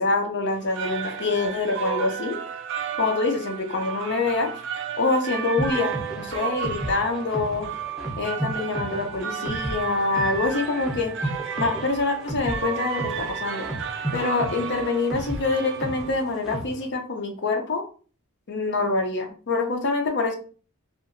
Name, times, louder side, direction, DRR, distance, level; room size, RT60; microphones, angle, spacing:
voice 1, 0.0-2.4 3.0-4.5 5.0-7.7 8.2-11.2 11.6-13.7 14.1-17.8 18.5-20.4, left 3 dB, 55° left, 4 dB, 0.6 m, -25 dB
sound 1, 0.5-16.4, right 8 dB, 55° right, 0.3 m, -33 dB
sound 2, 5.6-16.9, right 1 dB, ahead, 0.6 m, -34 dB
2.8 x 2.5 x 2.5 m, 0.39 s
head